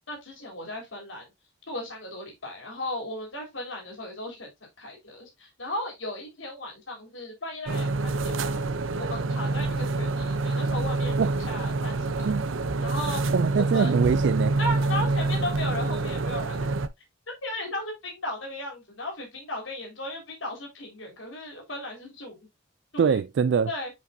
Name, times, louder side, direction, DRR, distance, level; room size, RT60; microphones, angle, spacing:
voice 1, 0.1-1.2 1.7-4.5 4.8-8.6 9.0-12.3 12.8-13.2 13.6-13.9 14.6-16.7 17.3-22.4 22.9-23.2 23.7-23.9, left 1 dB, 80° left, 3.4 m, -36 dB
sound 1, 7.7-16.9, right 3 dB, 85° right, 0.7 m, -27 dB
voice 2, 13.3-14.6 23.0-23.7, right 6 dB, 65° right, 0.3 m, -23 dB
8.2 x 5.1 x 2.7 m
head